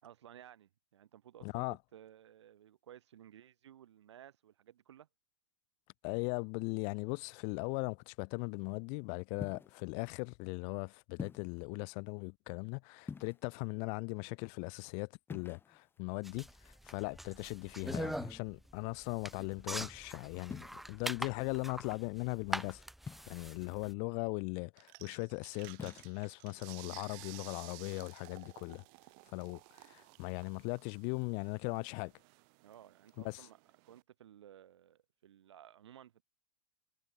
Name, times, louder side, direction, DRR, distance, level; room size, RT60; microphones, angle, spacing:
voice 1, 0.0-5.1 32.6-33.6 33.9-36.2, right 11 dB, 85° right, 4.9 m, -57 dB
voice 2, 1.4-1.8 6.0-22.8 23.3-28.8 29.3-32.1 33.2-33.5, left 40 dB or more, 50° left, 1.3 m, -39 dB
sound 1, 9.4-9.8 11.2-11.6 13.0-13.7 15.3-16.0 17.9-18.4 20.5-20.7 23.1-23.6 25.7-26.1, left 5 dB, 15° left, 2.1 m, -46 dB
sound 2, 16.2-23.9, equal, ahead, 1.0 m, -43 dB
sound 3, 24.8-34.0, right 40 dB or more, 55° right, 3.4 m, -55 dB
hypercardioid pair, 120°, 14 cm